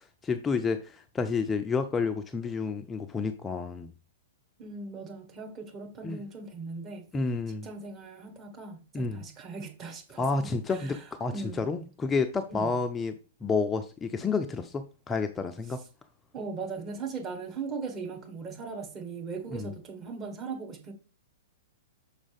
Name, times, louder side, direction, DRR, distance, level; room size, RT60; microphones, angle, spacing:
voice 1, 0.2-3.9 6.0-6.2 7.1-7.7 8.9-9.2 10.2-13.2 13.4-15.8 19.5-19.7, left 4 dB, 15° left, 0.5 m, -30 dB
voice 2, 4.6-7.1 7.6-11.7 12.5-12.8 16.3-20.9, right 4 dB, 25° right, 1.5 m, -39 dB
6.2 x 5.1 x 3.4 m
figure-of-eight pair, 110°, 0 cm